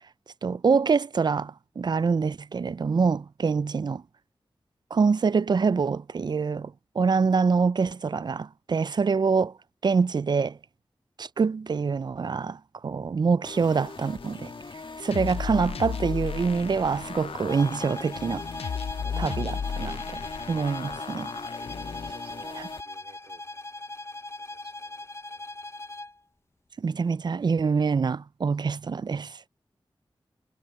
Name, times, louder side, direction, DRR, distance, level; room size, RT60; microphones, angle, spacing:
voice 1, 0.4-4.0 4.9-9.5 9.8-10.6 11.2-14.5 15.0-18.4 19.2-20.2 20.5-21.3 26.8-29.4, right 5 dB, 50° right, 0.3 m, -25 dB
sound 1, 13.4-22.8, left 4 dB, 60° left, 1.6 m, -42 dB
sound 2, 15.1-22.1, left 7 dB, 85° left, 0.4 m, -35 dB
sound 3, 17.5-26.2, left 2 dB, 25° left, 0.5 m, -39 dB
voice 2, 22.1-23.7 24.4-25.1 25.3-25.4, right 5 dB, 90° right, 3.1 m, -55 dB
wide cardioid pair, 70°, 10 cm